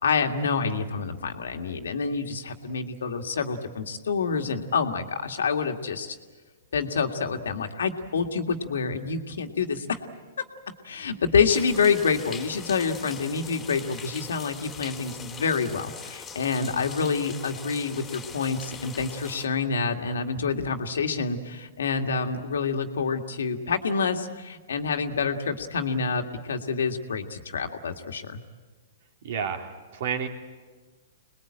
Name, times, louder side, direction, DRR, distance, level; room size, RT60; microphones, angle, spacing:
voice 1, 0.0-6.2 6.7-10.0 10.4-10.5 10.8-28.4, left 5 dB, 80° left, 5 dB, 2.0 m, -27 dB
sound 1, 11.5-19.5, left 6 dB, 20° left, 2.4 m, -41 dB
voice 2, 29.2-30.3, right 7 dB, 60° right, 4 dB, 3.1 m, -30 dB
26.5 x 20.5 x 8.9 m, 1.4 s
hypercardioid pair, 130°, 0 cm